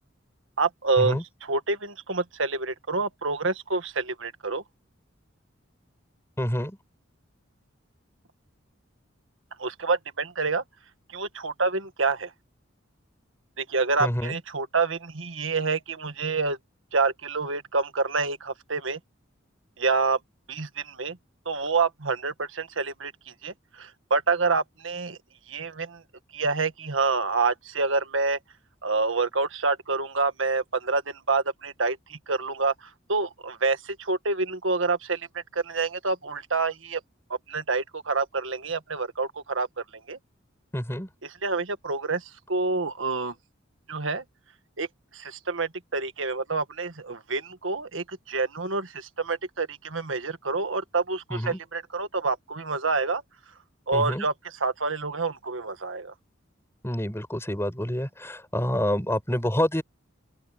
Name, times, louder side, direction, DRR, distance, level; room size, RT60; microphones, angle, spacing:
voice 1, 0.6-4.6 9.6-10.6 11.1-12.3 13.6-16.6 16.9-19.0 19.8-20.2 20.5-21.2 21.5-23.1 23.4-25.2 25.5-26.0 26.3-28.4 28.8-37.0 37.5-39.7 40.1-40.2 41.2-43.3 43.9-44.2 44.8-44.9 45.1-53.2 53.9-56.1, right 4 dB, 85° right, 1.7 m, -27 dB
voice 2, 6.4-6.8 14.0-14.4 40.7-41.1 51.3-51.6 53.9-54.3 56.8-59.8, left 1 dB, 15° left, 6.0 m, -27 dB
open air
head